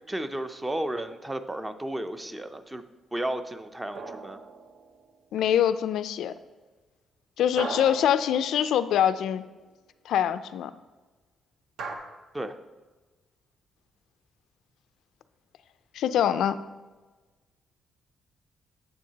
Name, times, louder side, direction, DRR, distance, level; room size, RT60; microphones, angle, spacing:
voice 1, 0.1-2.8 3.1-4.4 12.3-12.6, right 1 dB, 15° right, 9 dB, 0.4 m, -33 dB
sound 1, 4.0-5.2 7.6-9.2 11.8-12.0, right 4 dB, 70° right, 0.8 m, -38 dB
voice 2, 5.3-6.3 7.4-9.4 10.1-10.7 15.9-16.6, left 10 dB, 85° left, 12 dB, 0.3 m, -24 dB
9.1 x 7.3 x 2.8 m, 1.2 s
cardioid pair, 120°, 0 cm